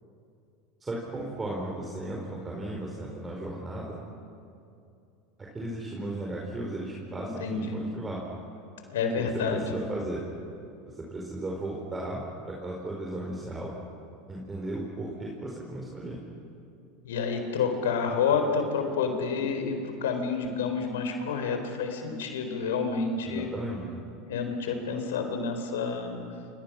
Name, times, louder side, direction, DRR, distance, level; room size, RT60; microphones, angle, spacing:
voice 1, 0.8-4.0 5.4-8.2 9.2-10.2 11.1-13.7 14.3-16.2 23.2-23.8, right 1 dB, 20° right, -2 dB, 4.7 m, -35 dB
voice 2, 7.4-7.8 8.9-9.6 17.0-23.5 24.2-26.2, left 5 dB, 85° left, 6 dB, 4.0 m, -29 dB
28.5 x 25.5 x 6.2 m, 2.6 s
hypercardioid pair, 95°, 0 cm